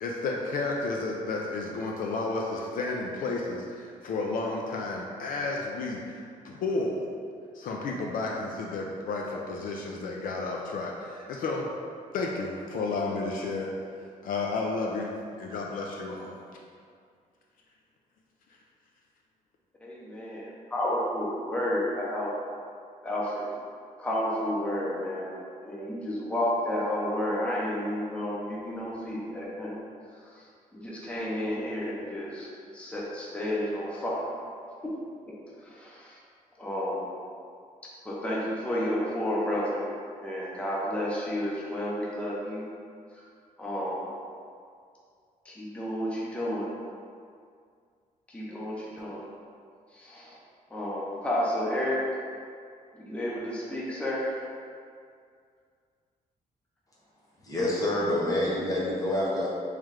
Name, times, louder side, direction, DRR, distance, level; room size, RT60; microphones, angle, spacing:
voice 1, 0.0-7.1 7.5-11.7 12.1-13.7 14.2-15.1 15.4-16.3, left 3 dB, 65° left, -1 dB, 0.4 m, -32 dB
voice 2, 19.8-22.3 23.0-23.5 24.0-29.8 30.2-30.5 30.7-34.3 34.8-34.9 35.3-35.4 35.6-36.2 36.6-37.1 38.0-39.9 40.2-42.7 43.1-43.2 43.6-44.1 45.4-46.7 48.3-49.3 49.9-50.4 50.7-52.0 52.9-54.4 59.2-59.3, left 1 dB, 10° left, -6 dB, 0.6 m, -31 dB
voice 3, 57.4-59.5, left 1 dB, 25° left, -6 dB, 1.0 m, -27 dB
3.2 x 3.1 x 3.6 m, 2.2 s
cardioid pair, 135°, 15 cm